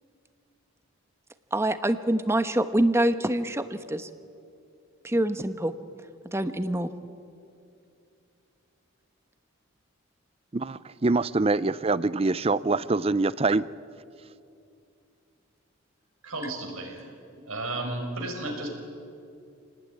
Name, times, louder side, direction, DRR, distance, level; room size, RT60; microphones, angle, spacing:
voice 1, 1.5-4.1 5.0-5.7 6.3-6.9, right 1 dB, 10° right, 10 dB, 1.0 m, -25 dB
voice 2, 10.5-13.7, right 3 dB, 30° right, 17 dB, 0.5 m, -24 dB
voice 3, 16.2-17.1 17.5-18.7, right 2 dB, 90° right, 2 dB, 5.7 m, -33 dB
28.0 x 19.0 x 9.8 m, 2.5 s
head